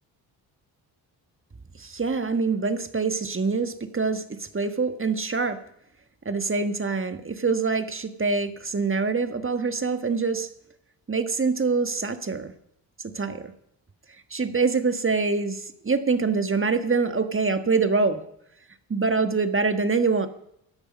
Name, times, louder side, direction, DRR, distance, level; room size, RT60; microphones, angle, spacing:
voice 1, 1.8-5.6 6.3-10.5 11.1-12.5 13.0-13.5 14.3-18.2 18.9-20.3, right 4 dB, 25° right, 9 dB, 1.6 m, -25 dB
16.0 x 11.0 x 5.3 m, 0.75 s
hypercardioid pair, 50°, 50 cm